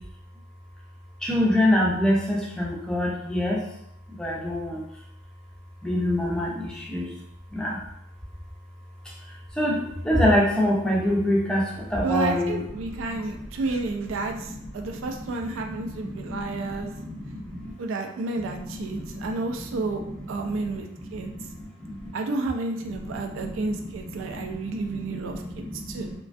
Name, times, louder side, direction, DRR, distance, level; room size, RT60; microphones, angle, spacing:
voice 1, 1.2-3.6 4.2-4.8 5.8-7.0 7.6-7.8 9.6-9.8 10.1-11.6 11.9-12.6, left 1 dB, 5° left, -4 dB, 0.4 m, -23 dB
voice 2, 12.0-16.9 17.8-20.0 20.3-21.3 22.1-26.1, right 3 dB, 80° right, 4 dB, 0.3 m, -31 dB
2.4 x 2.2 x 2.4 m, 0.76 s
head